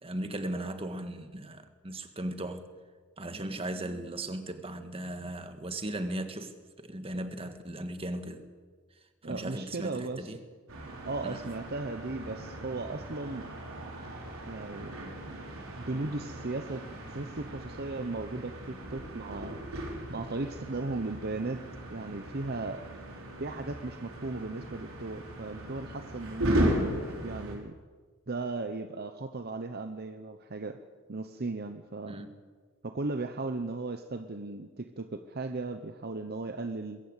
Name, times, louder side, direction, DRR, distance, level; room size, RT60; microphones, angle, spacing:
voice 1, 0.0-2.7 3.2-8.4 9.2-10.4 11.2-11.5 32.1-32.3, right 1 dB, 30° right, 1.7 m, -37 dB
voice 2, 9.2-10.3 11.0-13.5 14.5-15.0 15.3-15.4 15.7-19.6 20.1-21.6 21.9-22.9 23.4-26.9 27.2-27.8 28.3-30.8 31.1-32.2 32.8-37.0, right 3 dB, 50° right, 0.9 m, -36 dB
sound 1, 10.7-27.6, right 1 dB, 85° right, 4.8 m, -36 dB
21.5 x 16.0 x 8.1 m
head